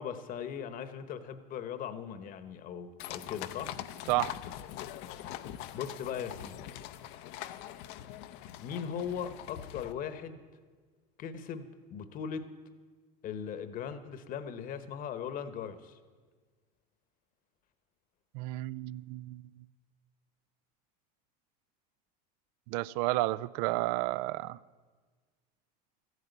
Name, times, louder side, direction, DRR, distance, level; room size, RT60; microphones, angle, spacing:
voice 1, 0.0-3.7 5.7-6.8 8.6-10.4 11.2-12.5 13.2-16.0, left 8 dB, 40° left, 1.1 m, -39 dB
sound 1, 3.0-9.9, left 12 dB, 60° left, 0.7 m, -43 dB
voice 2, 18.3-19.4 22.7-24.6, right 18 dB, 65° right, 0.4 m, -31 dB
13.5 x 9.5 x 8.0 m
supercardioid pair, 120°, 21 cm